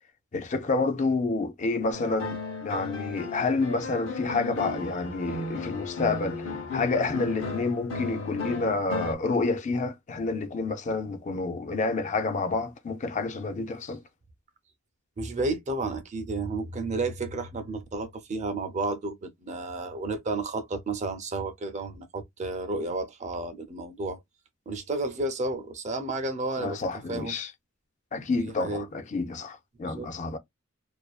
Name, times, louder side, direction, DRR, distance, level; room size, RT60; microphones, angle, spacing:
voice 1, 0.3-14.0 26.6-27.5 28.1-30.4, left 3 dB, 35° left, 0.4 m, -29 dB
sound 1, 1.9-9.1, left 3 dB, 70° left, 0.8 m, -35 dB
voice 2, 15.2-24.2 24.7-26.8 27.1-27.4 28.4-28.8 29.9-30.1, right 2 dB, 35° right, 0.5 m, -32 dB
2.5 x 2.2 x 2.3 m
head